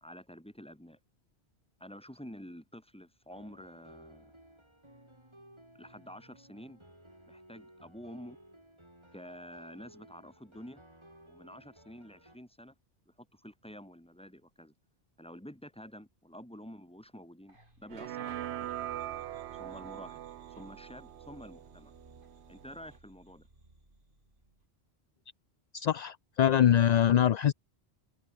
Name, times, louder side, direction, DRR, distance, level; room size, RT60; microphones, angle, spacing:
voice 1, 0.0-1.0 1.8-4.3 5.8-6.8 7.3-8.4 9.1-10.8 11.3-12.7 13.1-14.7 15.2-18.7 19.6-20.2 20.6-21.9 22.5-23.5, equal, 5° left, 3.1 m, -49 dB
sound 1, 3.3-12.4, right 1 dB, 25° right, 6.0 m, -57 dB
sound 2, 17.5-24.7, right 1 dB, 50° right, 5.1 m, -60 dB
sound 3, 17.9-23.0, right 13 dB, 85° right, 0.9 m, -42 dB
voice 2, 25.7-27.5, left 10 dB, 55° left, 0.5 m, -24 dB
omnidirectional pair, 1.1 m